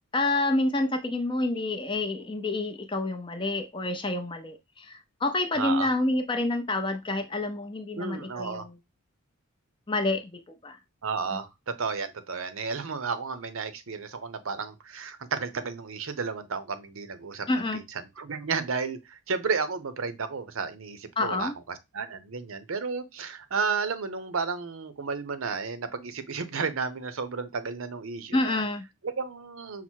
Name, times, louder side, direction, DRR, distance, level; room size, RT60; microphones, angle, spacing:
voice 1, 0.1-8.7 9.9-10.8 11.3-11.4 17.5-17.8 21.2-21.5 28.3-28.9, left 2 dB, 20° left, 0.5 m, -28 dB
voice 2, 5.6-5.9 8.0-8.7 11.0-17.5 17.7-17.8 18.2-28.6 29.0-29.8, right 5 dB, 70° right, 0.7 m, -32 dB
5.7 x 2.0 x 4.5 m
head